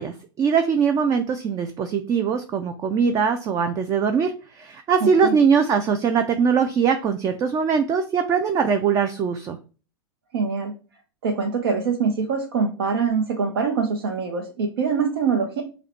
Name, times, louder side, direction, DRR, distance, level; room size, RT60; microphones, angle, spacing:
voice 1, 0.0-9.6, right 6 dB, 25° right, 8 dB, 0.4 m, -21 dB
voice 2, 5.0-5.3 10.3-10.7 11.2-15.6, right 5 dB, 70° right, 3 dB, 0.7 m, -24 dB
4.8 x 2.2 x 4.2 m, 0.37 s
hypercardioid pair, 100°, 12 cm